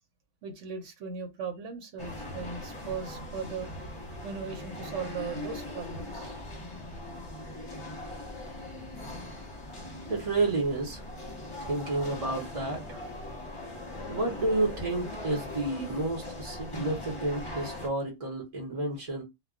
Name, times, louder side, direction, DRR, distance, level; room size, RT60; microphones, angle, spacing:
voice 1, 0.4-3.7 4.2-6.4, right 5 dB, 90° right, 1.0 m, -38 dB
sound 1, 2.0-17.9, left 1 dB, 30° left, 0.8 m, -40 dB
voice 2, 10.1-11.0 11.6-13.1 14.1-19.2, right 2 dB, 35° right, 0.8 m, -30 dB
2.2 x 2.2 x 3.5 m
omnidirectional pair, 1.2 m